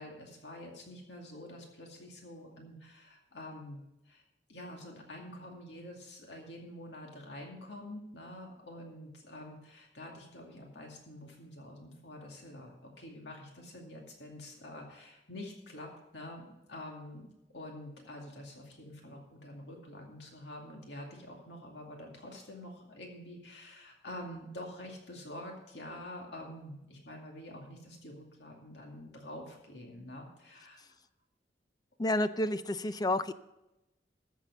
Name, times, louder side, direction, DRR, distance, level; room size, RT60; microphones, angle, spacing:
voice 1, 0.0-4.2 4.5-31.0, left 1 dB, 70° left, 1 dB, 2.3 m, -47 dB
voice 2, 32.0-33.3, left 1 dB, 20° left, 12 dB, 0.5 m, -30 dB
14.0 x 7.4 x 5.5 m, 0.93 s
head